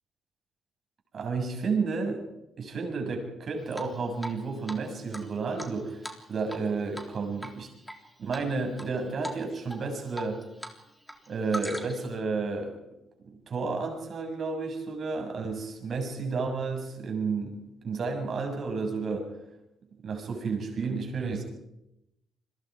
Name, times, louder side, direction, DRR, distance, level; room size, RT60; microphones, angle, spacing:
voice 1, 1.1-2.2 2.6-7.7 8.2-10.4 11.3-12.7 13.2-17.5 17.8-19.3 20.0-21.4, right 4 dB, 55° right, 3 dB, 6.8 m, -31 dB
Drip, 3.7-4.4 4.7-4.8 5.1-6.7 6.9-7.1 7.4-8.0 8.3-8.9 9.2-9.4 9.7-10.7 11.0-12.1, equal, 5° left, 3.5 m, -39 dB
28.5 x 22.0 x 4.9 m, 0.87 s
cardioid pair, 90°, 0 cm